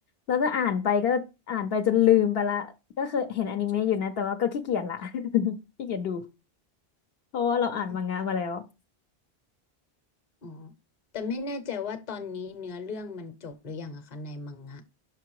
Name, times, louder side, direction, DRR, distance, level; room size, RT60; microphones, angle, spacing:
voice 1, 0.3-6.2 7.3-8.6, left 8 dB, 70° left, 0.9 m, -26 dB
voice 2, 10.4-10.7 11.1-14.8, left 4 dB, 45° left, 0.9 m, -36 dB
5.9 x 5.4 x 4.7 m
omnidirectional pair, 1.1 m